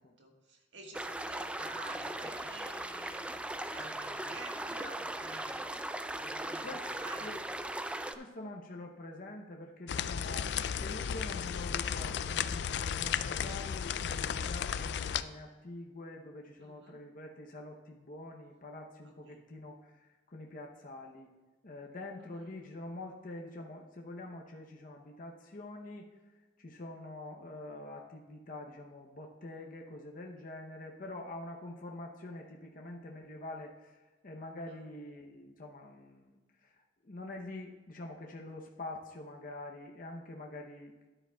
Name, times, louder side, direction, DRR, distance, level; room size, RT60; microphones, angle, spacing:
voice 1, 0.2-3.3 3.7-5.6 6.1-7.4 9.8-10.7 16.6-17.0 19.0-19.4 22.2-22.5 34.7-34.8, right 2 dB, 80° right, 1 dB, 1.6 m, -51 dB
sound 1, 0.9-8.2, right 1 dB, 5° right, 0.4 m, -39 dB
voice 2, 6.6-6.9 7.2-7.3 8.1-21.3 21.6-41.1, left 2 dB, 50° left, 1 dB, 0.8 m, -46 dB
sound 2, 9.9-15.2, left 8 dB, 70° left, 0.3 m, -34 dB
12.5 x 10.0 x 2.3 m, 1.2 s
head